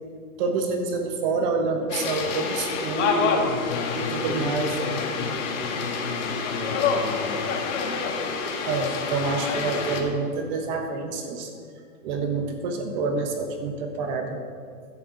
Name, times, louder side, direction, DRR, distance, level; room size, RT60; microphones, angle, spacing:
voice 1, 0.4-3.5 4.0-4.7 8.7-11.5 12.0-14.4, right 4 dB, 30° right, 4 dB, 1.3 m, -27 dB
sound 1, 1.9-10.0, left 5 dB, 50° left, 1.9 m, -28 dB
voice 2, 3.4-7.5, left 4 dB, 65° left, 1 dB, 2.7 m, -34 dB
15.0 x 10.5 x 4.0 m, 2.1 s
hypercardioid pair, 150°, 45 cm